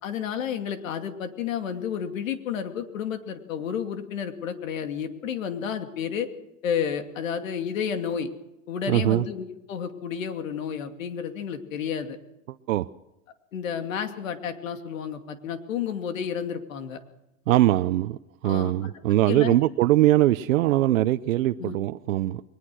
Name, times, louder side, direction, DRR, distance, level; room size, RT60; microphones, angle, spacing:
voice 1, 0.0-6.3 6.6-8.3 8.7-12.2 13.5-17.0 18.4-18.7 19.3-19.5 21.6-21.8, left 8 dB, 85° left, 7 dB, 2.7 m, -31 dB
voice 2, 8.9-9.2 12.7-12.9 17.5-18.2 18.4-22.4, right 15 dB, 85° right, 11 dB, 0.8 m, -21 dB
21.5 x 20.0 x 6.3 m, 0.90 s
supercardioid pair, 175°, 39 cm